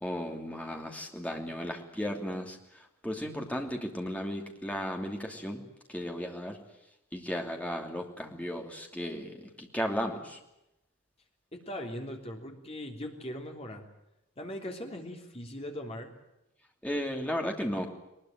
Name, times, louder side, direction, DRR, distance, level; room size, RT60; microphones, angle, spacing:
voice 1, 0.0-5.6 5.9-6.6 7.1-10.4 16.8-17.9, equal, 5° left, 2 dB, 2.8 m, -35 dB
voice 2, 11.5-13.9 14.4-16.1, left 1 dB, 25° left, 2 dB, 3.4 m, -40 dB
21.5 x 21.0 x 9.2 m, 0.88 s
head